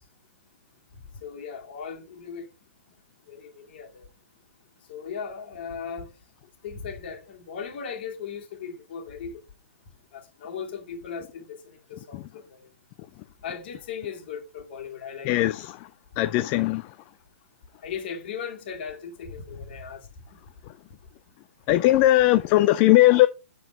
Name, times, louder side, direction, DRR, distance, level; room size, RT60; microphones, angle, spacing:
voice 1, 1.2-2.5 3.3-4.1 4.9-6.1 6.6-9.4 10.1-12.7 13.4-15.3 17.8-20.4, left 6 dB, 45° left, 2.3 m, -37 dB
voice 2, 15.2-15.9 16.2-16.9 21.7-23.3, left 16 dB, 30° left, 0.4 m, -19 dB
7.8 x 4.7 x 5.2 m
figure-of-eight pair, 120°, 7 cm